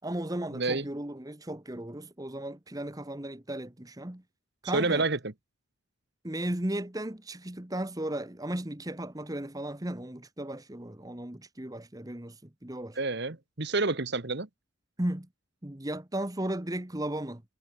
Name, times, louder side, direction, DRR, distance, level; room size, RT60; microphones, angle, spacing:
voice 1, 0.0-4.2 4.6-5.1 6.2-13.0 15.0-15.3 15.6-17.4, right 1 dB, 15° right, 1.2 m, -35 dB
voice 2, 0.5-0.8 4.7-5.2 13.0-14.5, right 3 dB, 50° right, 1.4 m, -28 dB
head